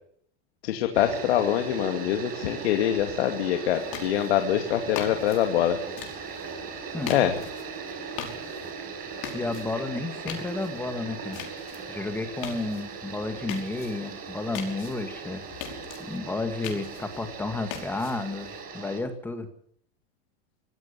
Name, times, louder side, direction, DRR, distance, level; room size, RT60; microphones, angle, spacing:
voice 1, 0.6-5.8 7.1-7.3, left 11 dB, 90° left, 5 dB, 2.6 m, -24 dB
sound 1, 0.9-19.0, right 5 dB, 30° right, 6.3 m, -39 dB
sound 2, 3.8-18.6, left 9 dB, 50° left, 5.3 m, -42 dB
voice 2, 9.3-11.4 11.9-15.4 16.1-19.5, left 2 dB, 5° left, 8 dB, 2.2 m, -32 dB
24.5 x 16.0 x 7.1 m, 0.63 s
supercardioid pair, 165°, 31 cm